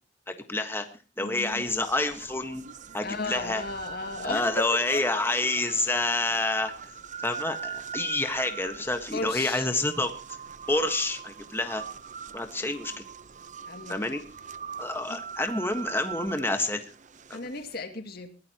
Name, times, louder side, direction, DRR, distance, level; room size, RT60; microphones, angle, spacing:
voice 1, 0.3-0.9 1.2-2.6 2.9-3.6 4.2-6.7 7.2-10.4 10.7-11.8 12.3-13.0 13.9-14.2 14.8-16.8 17.3-17.4, left 2 dB, 15° left, 1.5 m, -28 dB
voice 2, 1.2-1.7 3.0-5.2 9.1-9.7 12.6-12.7 13.7-14.2 15.1-15.2 17.3-18.4, left 3 dB, 60° left, 2.3 m, -36 dB
sound 1, 1.4-17.8, right 6 dB, 45° right, 0.8 m, -42 dB
21.5 x 16.0 x 3.0 m
head